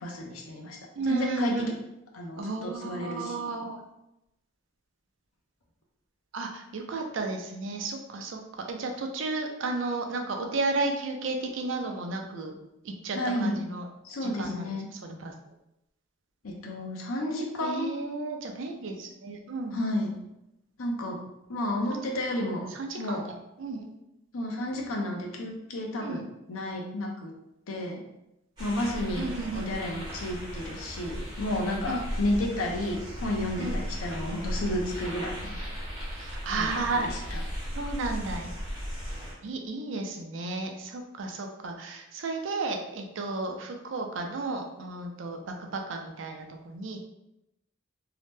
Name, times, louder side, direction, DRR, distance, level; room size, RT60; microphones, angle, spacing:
voice 1, 0.0-0.8 1.0-1.7 2.1-3.5 13.1-13.6 14.0-14.9 16.4-17.9 19.7-20.2 20.8-21.2 21.5-22.7 23.0-23.2 24.3-27.3 27.7-28.0 28.6-35.6 36.5-37.4, left 1 dB, 90° left, 0 dB, 0.6 m, -32 dB
voice 2, 1.0-1.7 2.4-3.8 6.3-8.4 8.7-12.5 12.8-13.9 14.2-15.3 17.6-19.8 21.9-22.0 22.7-23.2 23.6-23.9 26.0-26.3 29.2-29.7 31.9-32.0 33.6-33.8 36.2-37.1 37.8-38.5 39.4-47.0, right 3 dB, 65° right, 3 dB, 0.4 m, -33 dB
sound 1, 28.6-39.3, equal, 20° right, 1.1 m, -36 dB
2.8 x 2.1 x 3.2 m, 0.88 s
head